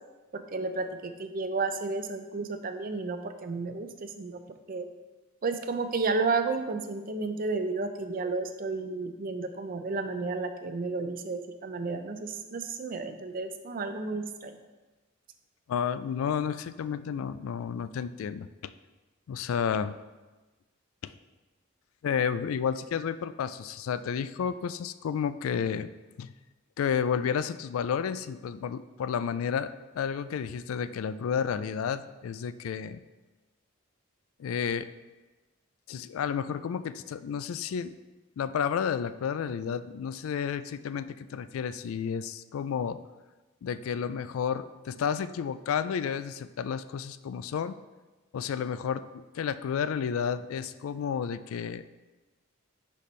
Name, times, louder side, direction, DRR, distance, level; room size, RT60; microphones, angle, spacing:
voice 1, 0.3-4.4 4.7-4.9 5.4-14.5, right 3 dB, 45° right, 8 dB, 0.5 m, -32 dB
voice 2, 15.7-18.7 19.3-20.0 21.0-21.1 22.0-25.9 26.2-26.3 26.8-33.0 34.4-34.9 35.9-38.0 38.4-43.1 43.6-47.8 48.3-51.9, left 7 dB, 85° left, 14 dB, 0.3 m, -31 dB
10.5 x 4.2 x 3.2 m, 1.2 s
head